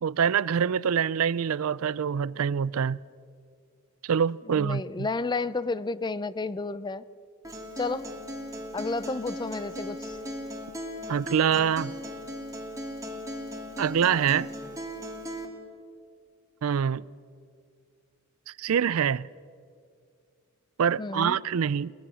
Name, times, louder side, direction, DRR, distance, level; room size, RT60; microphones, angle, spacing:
voice 1, 0.0-3.0 4.0-5.1 11.1-11.9 13.8-14.5 16.6-17.0 18.5-19.3 20.8-21.9, right 7 dB, 75° right, 0.4 m, -25 dB
voice 2, 4.5-7.0 7.8-8.1 8.7-10.2 21.0-21.4, left 3 dB, 20° left, 0.5 m, -31 dB
Acoustic guitar, 7.4-15.5, equal, 15° right, 2.6 m, -38 dB
23.0 x 20.0 x 6.2 m
head